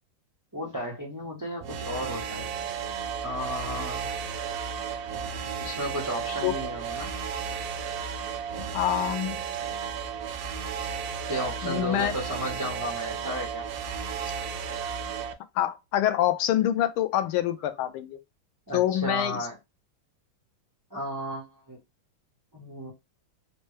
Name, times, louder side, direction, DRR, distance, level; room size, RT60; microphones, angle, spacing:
voice 1, 0.5-2.5 3.2-4.1 5.5-7.1 11.3-13.6 18.7-19.6 20.9-21.8 22.5-22.9, equal, 25° right, 0.4 m, -34 dB
sound 1, 1.6-15.3, right 7 dB, 85° right, 1.5 m, -34 dB
voice 2, 8.7-9.4 11.6-12.1 15.6-18.2 18.7-19.4, left 12 dB, 85° left, 1.4 m, -26 dB
4.3 x 2.2 x 3.1 m
omnidirectional pair, 2.3 m